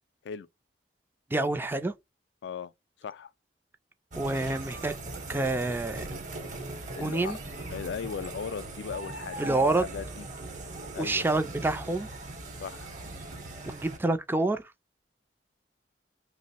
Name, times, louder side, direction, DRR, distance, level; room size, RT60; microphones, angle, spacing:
voice 1, 1.3-1.9 4.2-4.9 5.3-6.1 6.9-7.4 9.4-9.8 11.0-12.1 13.7-14.6, right 2 dB, 10° right, 0.3 m, -27 dB
voice 2, 3.0-3.3 7.0-7.4 7.7-10.3 10.9-11.4 12.6-12.9, left 6 dB, 75° left, 0.3 m, -38 dB
sound 1, 4.1-14.0, right 2 dB, 45° right, 0.9 m, -40 dB
2.9 x 2.0 x 4.1 m
head